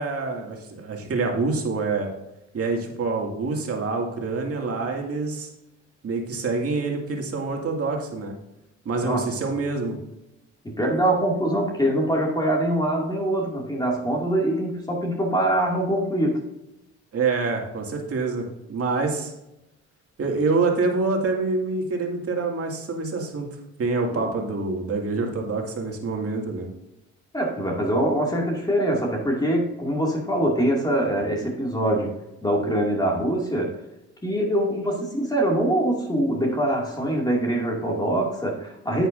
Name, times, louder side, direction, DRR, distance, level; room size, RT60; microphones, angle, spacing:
voice 1, 0.0-2.1 2.5-5.5 6.0-8.3 8.9-10.0 17.1-19.3 20.2-23.5 23.8-26.7, right 3 dB, 50° right, 1 dB, 2.2 m, -26 dB
voice 2, 10.6-16.4 24.1-24.3 25.1-25.3 27.3-32.1 32.4-33.8 34.2-39.1, right 1 dB, 15° left, -2 dB, 2.3 m, -24 dB
10.0 x 8.0 x 2.6 m, 0.90 s
cardioid pair, 90°, 30 cm